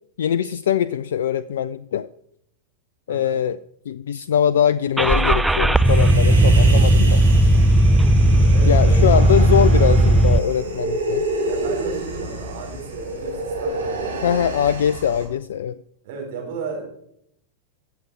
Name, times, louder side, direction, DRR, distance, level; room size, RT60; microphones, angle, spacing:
voice 1, 0.2-2.1 3.1-3.6 3.9-7.2 8.7-11.3 14.2-15.8, left 9 dB, 60° left, 17 dB, 0.3 m, -22 dB
voice 2, 3.1-3.4 8.1-9.3 11.4-14.6 16.0-16.8, right 4 dB, 50° right, -1 dB, 4.2 m, -34 dB
Car / Engine starting, 5.0-10.4, right 1 dB, 5° right, 0.5 m, -15 dB
Human voice, 5.8-15.2, right 2 dB, 80° right, 4.1 m, -29 dB
15.5 x 6.9 x 4.7 m, 0.74 s
figure-of-eight pair, 90°, 0 cm